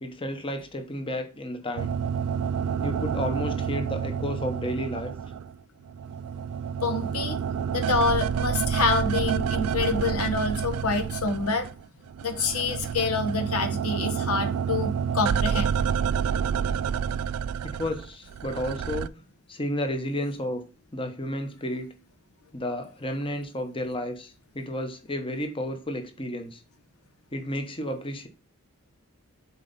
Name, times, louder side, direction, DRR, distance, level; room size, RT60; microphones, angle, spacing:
voice 1, 0.0-1.9 2.8-5.1 17.6-19.1 19.5-20.6 20.9-21.9 22.5-26.6 27.3-28.3, left 1 dB, 25° left, 1.0 m, -32 dB
sound 1, 1.8-5.5 5.9-11.8 12.1-19.1, right 7 dB, 80° right, 0.3 m, -29 dB
voice 2, 6.8-7.4 7.7-11.7 12.2-15.8, left 3 dB, 80° left, 1.1 m, -27 dB
7.2 x 4.3 x 4.1 m
head